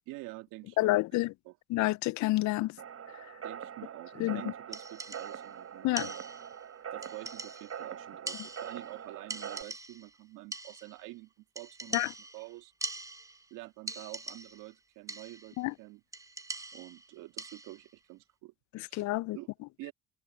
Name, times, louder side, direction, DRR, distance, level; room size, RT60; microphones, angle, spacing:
voice 1, 0.1-1.6 3.4-6.3 6.9-12.7 13.5-16.0 16.7-18.5 18.9-19.5 19.8-19.9, right 20 dB, 80° right, 2.0 m, -48 dB
voice 2, 0.8-1.3 1.7-2.8 4.2-4.4 5.8-6.1 11.9-12.1 15.6-15.7 18.7-19.4, left 19 dB, 60° left, 0.4 m, -29 dB
sound 1, 2.8-9.6, right 8 dB, 45° right, 4.7 m, -43 dB
sound 2, 4.7-5.5 6.0-6.6 7.0-7.8 8.3-9.0 9.3-10.2 10.5-11.1 11.6-13.5 13.9-14.7 15.1-15.6 16.1-17.9, right 2 dB, 10° right, 0.7 m, -42 dB
supercardioid pair, 70°, 32 cm